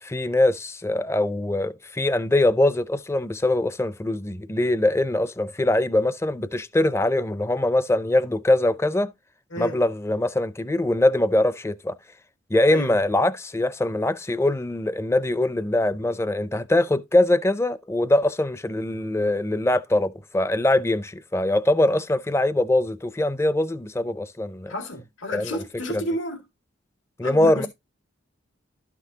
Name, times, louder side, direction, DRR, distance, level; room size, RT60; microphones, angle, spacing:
voice 1, 0.0-9.1 9.6-11.9 12.5-24.7 25.3-25.6 25.9-26.0 27.2-27.7, left 1 dB, 15° left, 0.5 m, -22 dB
voice 2, 24.7-26.4 27.2-27.7, equal, 80° left, 2.1 m, -31 dB
12.0 x 6.0 x 2.8 m
head